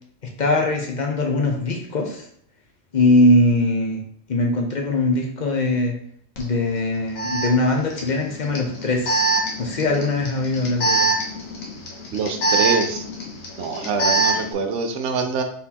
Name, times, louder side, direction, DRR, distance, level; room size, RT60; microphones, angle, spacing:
voice 1, 0.4-2.2 2.9-4.0 4.3-6.0 6.4-9.2 9.6-11.1, left 2 dB, 45° left, 1 dB, 0.6 m, -21 dB
Alarm, 6.4-6.5 7.2-14.5, right 2 dB, 85° left, 1.3 m, -24 dB
voice 2, 12.1-13.0 13.6-15.4, right 5 dB, 70° right, 5 dB, 0.9 m, -25 dB
4.1 x 3.9 x 2.8 m, 0.64 s
omnidirectional pair, 1.4 m